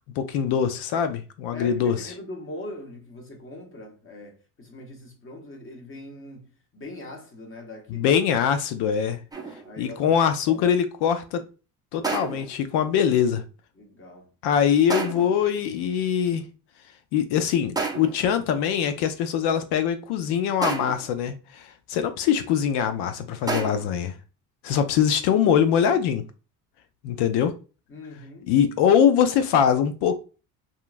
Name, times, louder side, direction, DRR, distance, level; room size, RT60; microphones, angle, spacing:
voice 1, 0.2-2.1 7.9-9.2 9.8-11.4 11.9-13.4 14.4-16.4 17.1-24.1 24.6-26.2 27.0-27.5 28.4-30.2, left 8 dB, 70° left, 0.5 m, -23 dB
voice 2, 1.5-8.1 9.6-10.2 10.5-10.7 13.8-14.3 27.9-28.5, left 1 dB, 30° left, 1.1 m, -41 dB
sound 1, 9.3-9.8 12.0-12.6 14.9-15.4 17.8-18.3 20.6-21.2 23.5-24.0, right 4 dB, 10° right, 0.5 m, -30 dB
2.8 x 2.4 x 2.4 m
supercardioid pair, 80°, 43 cm